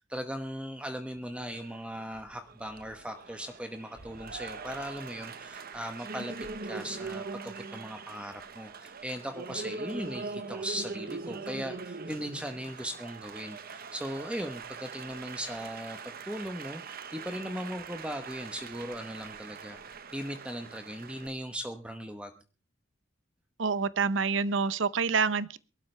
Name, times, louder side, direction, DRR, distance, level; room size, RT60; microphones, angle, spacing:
voice 1, 0.0-6.3 6.7-22.3, equal, 5° right, 7 dB, 1.0 m, -38 dB
Applause, 1.5-21.3, right 4 dB, 50° right, 1.0 m, -42 dB
voice 2, 23.6-25.6, right 5 dB, 70° right, 17 dB, 0.7 m, -27 dB
22.5 x 12.5 x 3.3 m, 0.34 s
head